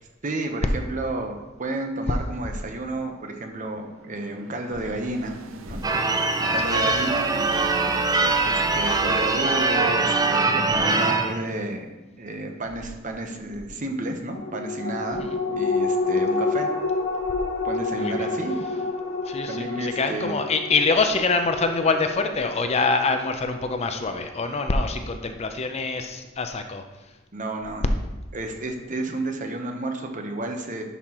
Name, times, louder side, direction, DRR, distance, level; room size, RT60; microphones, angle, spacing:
voice 1, 0.2-5.3 5.7-5.8 6.4-7.8 8.4-11.9 12.2-16.7 17.6-18.6 19.5-20.3 27.3-27.9 28.3-30.8, right 2 dB, 40° right, 4 dB, 0.9 m, -31 dB
sound 1, 3.2-11.6, right 3 dB, 80° right, 0.6 m, -43 dB
Church bell / Car / Alarm, 5.8-11.4, right 3 dB, 20° right, 0.4 m, -22 dB
voice 2, 6.5-7.1 15.2-15.4 18.0-18.3 19.2-26.8, left 4 dB, 30° left, 6 dB, 0.5 m, -25 dB
sound 2, 14.3-25.2 25.5-25.6, left 3 dB, 60° left, 1.5 m, -29 dB
11.0 x 5.6 x 3.0 m, 1.1 s
head